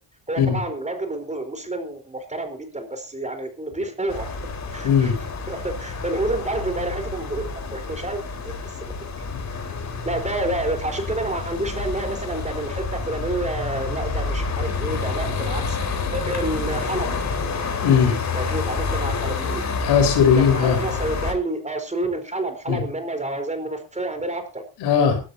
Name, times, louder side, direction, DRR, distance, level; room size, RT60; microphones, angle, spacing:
voice 1, 0.3-4.4 4.7-5.1 5.5-8.9 9.5-9.7 10.0-17.1 18.3-19.6 20.3-24.6, right 2 dB, 15° right, 6 dB, 4.3 m, -29 dB
sound 1, 4.1-21.3, left 4 dB, 45° left, 4.5 m, -28 dB
voice 2, 4.8-5.2 9.3-9.4 17.8-18.1 19.8-20.8 22.7-22.8 24.8-25.2, left 7 dB, 75° left, 4 dB, 4.9 m, -18 dB
20.5 x 13.0 x 2.9 m, 0.33 s
supercardioid pair, 75°, 40 cm